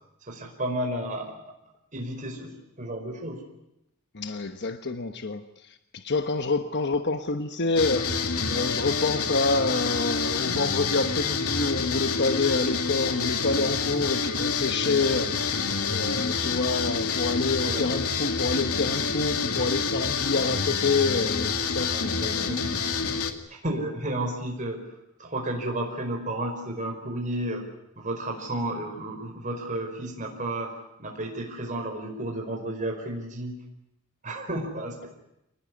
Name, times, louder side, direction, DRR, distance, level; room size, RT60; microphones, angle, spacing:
voice 1, 0.3-1.4 1.9-2.5 2.8-3.4 17.6-18.0 21.9-22.8 23.5-24.8 25.2-27.6 28.0-30.7 31.0-33.6 34.2-35.1, right 1 dB, 35° right, 1 dB, 5.0 m, -32 dB
voice 2, 4.1-22.7, left 3 dB, 50° left, 8 dB, 1.2 m, -28 dB
sound 1, 7.8-23.3, left 5 dB, 80° left, 2.4 m, -27 dB
27.5 x 19.5 x 9.9 m, 0.86 s
head